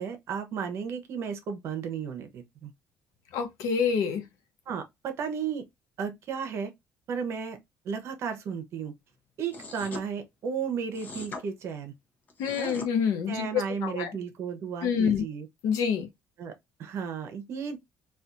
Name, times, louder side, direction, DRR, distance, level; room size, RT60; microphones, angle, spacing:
voice 1, 0.0-2.7 4.7-5.6 6.0-6.7 7.1-7.6 7.8-8.9 9.4-11.9 12.6-12.8 13.3-15.5 16.4-16.5 16.8-17.8, right 6 dB, 50° right, 0.8 m, -34 dB
voice 2, 3.3-4.2 12.4-14.1 14.8-15.2 15.6-16.1, left 7 dB, 75° left, 0.8 m, -27 dB
sound 1, 9.5-10.1 10.9-11.4 12.3-12.9, left 3 dB, 30° left, 0.8 m, -40 dB
4.2 x 2.4 x 2.5 m
cardioid pair, 160°, 6 cm